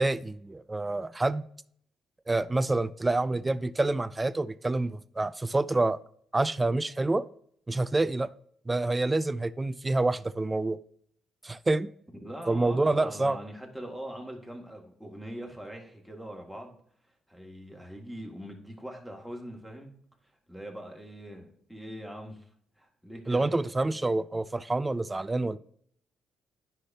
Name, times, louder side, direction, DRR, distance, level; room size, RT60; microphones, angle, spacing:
voice 1, 0.0-1.4 2.3-6.0 6.3-7.3 7.7-8.3 8.7-10.8 11.4-11.9 12.5-13.4 23.3-25.6, right 2 dB, 20° right, 0.4 m, -27 dB
voice 2, 12.2-16.8 17.3-19.9 20.5-22.5 22.8-23.5, equal, ahead, 2.0 m, -42 dB
9.8 x 5.8 x 2.7 m
cardioid pair, 90°, 0 cm